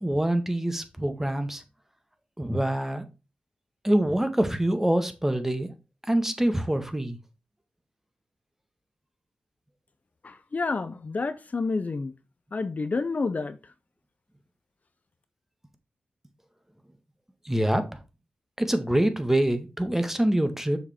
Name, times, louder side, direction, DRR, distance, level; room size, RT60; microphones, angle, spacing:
voice 1, 0.0-1.6 2.4-3.0 3.8-5.7 6.1-7.2 17.4-18.0 18.6-20.8, right 1 dB, 10° right, 1.5 m, -25 dB
voice 2, 10.2-12.1 12.5-13.7, left 3 dB, 50° left, 0.7 m, -29 dB
6.8 x 5.1 x 4.4 m
cardioid pair, 50°, 3 cm